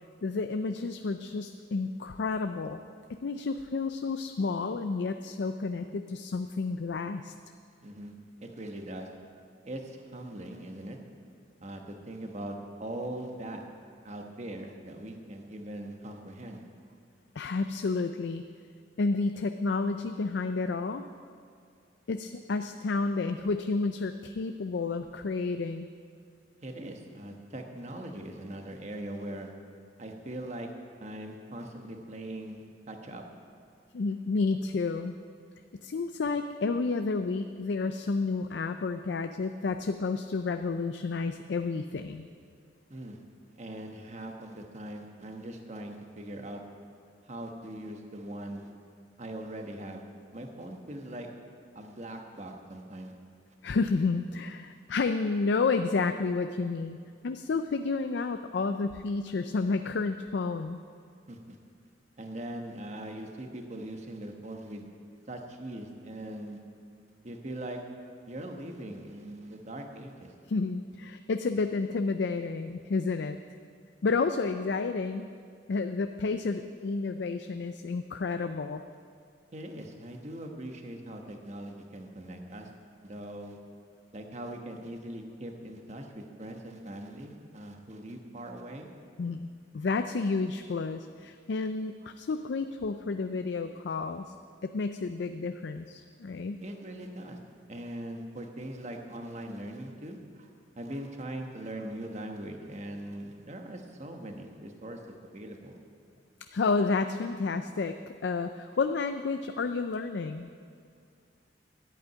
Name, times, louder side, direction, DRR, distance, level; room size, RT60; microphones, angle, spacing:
voice 1, 0.2-2.8 3.1-7.3 17.4-18.4 19.0-21.0 22.1-25.9 33.9-35.2 35.8-42.3 53.6-57.0 57.2-60.8 70.5-73.4 74.0-75.3 75.7-78.8 89.2-94.3 94.6-96.6 106.5-110.5, left 4 dB, 65° left, 8 dB, 0.4 m, -30 dB
voice 2, 7.8-8.1 8.4-9.1 9.6-11.0 11.6-13.6 14.0-16.6 26.6-29.5 30.0-30.7 31.0-33.2 42.9-43.2 43.6-46.6 47.2-48.7 49.2-50.0 50.3-51.3 51.7-53.1 61.3-61.6 62.2-64.9 65.3-66.6 67.2-67.8 68.3-70.3 79.5-82.7 83.0-83.6 84.1-88.9 96.6-97.4 97.7-100.5 100.8-105.0 105.3-105.8, right 1 dB, 40° right, 3 dB, 1.2 m, -41 dB
11.0 x 8.7 x 9.1 m, 2.2 s
head